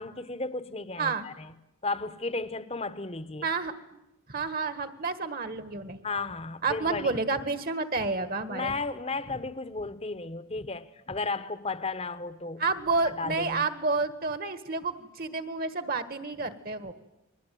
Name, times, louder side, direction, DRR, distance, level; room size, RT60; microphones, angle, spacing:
voice 1, 0.0-1.5 1.8-3.5 6.0-7.2 8.5-12.6 13.2-13.6, left 3 dB, 25° left, 1.0 m, -34 dB
voice 2, 3.4-3.7 4.3-6.0 6.6-8.7 12.6-16.9, right 3 dB, 40° right, 1.6 m, -30 dB
29.5 x 21.5 x 9.3 m
head